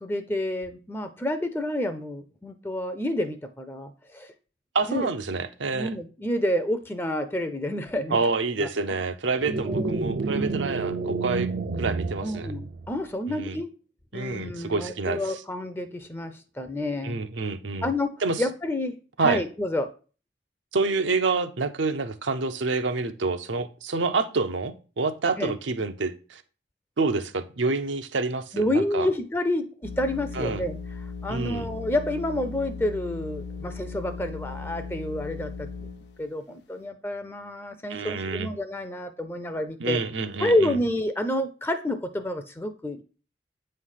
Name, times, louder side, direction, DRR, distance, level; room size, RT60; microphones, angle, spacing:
voice 1, 0.0-4.3 4.9-5.1 5.7-8.2 8.6-9.0 9.5-10.1 12.2-13.7 14.1-17.2 17.8-18.9 19.2-19.9 25.4-25.5 28.5-30.8 31.2-35.7 36.2-40.0 40.4-43.0, left 1 dB, 10° left, 8 dB, 0.4 m, -29 dB
voice 2, 4.7-5.9 8.1-11.5 11.8-12.5 13.3-13.6 14.1-15.4 17.0-17.9 18.2-18.4 19.2-19.4 20.7-26.4 27.0-29.1 30.3-30.6 31.3-31.7 37.9-38.5 39.8-40.8, right 4 dB, 90° right, 9 dB, 0.7 m, -27 dB
sound 1, 9.4-13.1, right 3 dB, 50° right, 0.4 m, -29 dB
sound 2, 29.8-36.3, left 5 dB, 70° left, 0.7 m, -37 dB
8.3 x 3.3 x 5.6 m, 0.38 s
head